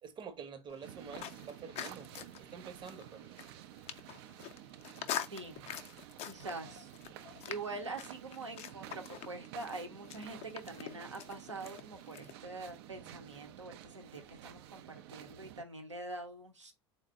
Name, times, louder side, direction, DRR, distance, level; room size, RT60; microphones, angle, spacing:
voice 1, 0.0-3.4, right 6 dB, 30° right, 0.8 m, -48 dB
sound 1, 0.7-12.3, left 10 dB, 45° left, 0.5 m, -45 dB
sound 2, 0.8-15.6, right 12 dB, 60° right, 0.4 m, -52 dB
voice 2, 5.3-5.7 6.2-6.9 7.5-16.7, right 3 dB, 90° right, 0.7 m, -44 dB
3.9 x 2.1 x 3.4 m
figure-of-eight pair, 70°, 15 cm